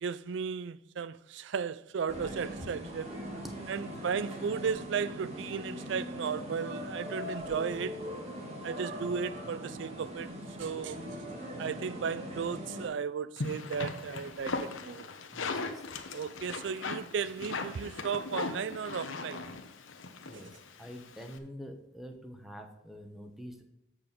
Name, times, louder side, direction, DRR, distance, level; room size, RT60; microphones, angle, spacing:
voice 1, 0.0-3.1 3.7-8.0 8.6-10.3 10.6-11.0 11.6-15.1 16.1-19.4 20.3-20.4, right 6 dB, 65° right, 0.4 m, -35 dB
sound 1, 2.1-12.9, equal, 30° right, 1.9 m, -41 dB
sound 2, 13.4-21.4, left 3 dB, 80° left, 1.0 m, -39 dB
voice 2, 15.3-15.8 20.2-20.5 20.8-23.6, equal, ahead, 1.0 m, -46 dB
7.6 x 6.8 x 5.2 m
head